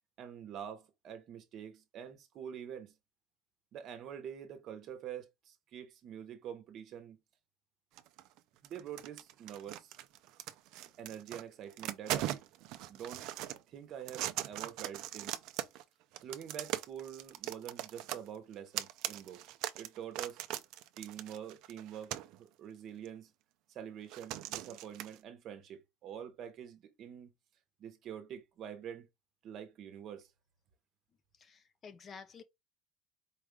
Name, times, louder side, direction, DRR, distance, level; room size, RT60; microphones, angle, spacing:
voice 1, 0.2-2.9 3.7-7.2 8.6-10.0 11.0-12.4 12.9-13.3 13.7-15.4 16.2-19.4 19.8-20.4 21.0-23.3 23.7-27.3 27.8-29.1 29.4-30.3, right 9 dB, 40° right, 0.9 m, -46 dB
sound 1, 8.0-8.4 8.6-11.4 11.7-13.6 14.0-15.8 16.1-22.4 23.1-23.2 24.1-25.2, right 14 dB, 55° right, 0.5 m, -40 dB
voice 2, 31.4-32.4, left 5 dB, 25° left, 0.3 m, -51 dB
4.8 x 2.4 x 3.2 m
cardioid pair, 170°, 0 cm